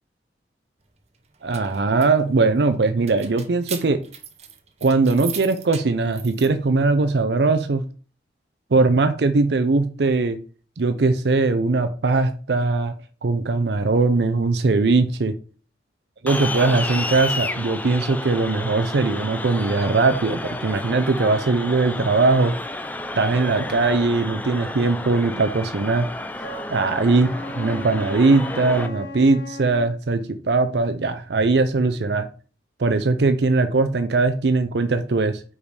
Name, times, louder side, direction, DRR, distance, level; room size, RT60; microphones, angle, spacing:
sound 1, 1.2-6.5, right 9 dB, 35° right, 0.8 m, -39 dB
voice 1, 1.4-4.0 4.8-7.8 8.7-10.4 10.8-12.9 13.2-15.3 16.2-22.6 23.2-26.1 26.7-32.3 32.8-35.4, right 3 dB, 70° right, 9 dB, 0.5 m, -20 dB
sound 2, 16.3-28.9, left 2 dB, 10° left, 0.5 m, -31 dB
Wind instrument woodwind instrument, 26.4-29.9, left 1 dB, 80° left, 1.2 m, -36 dB
5.1 x 4.9 x 5.0 m, 0.39 s
head